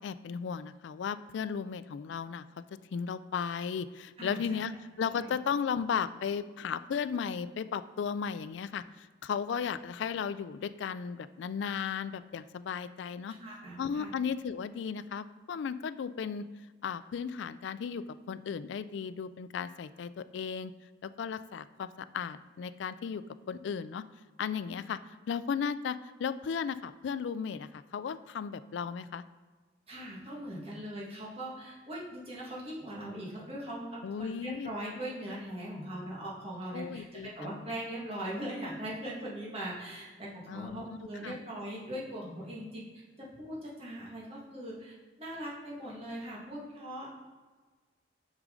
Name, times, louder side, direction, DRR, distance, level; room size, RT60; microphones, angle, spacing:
voice 1, 0.0-2.4 2.9-13.4 13.8-16.5 16.8-20.7 21.0-24.1 24.4-25.0 25.3-29.2 34.0-34.7 36.7-37.5 40.5-41.0 41.2-41.4, left 6 dB, 75° left, 14 dB, 0.3 m, -35 dB
voice 2, 4.2-4.6 5.1-5.3 13.4-14.1 29.9-47.1, right 1 dB, 30° right, -5 dB, 1.7 m, -40 dB
6.4 x 6.2 x 3.8 m, 1.4 s
head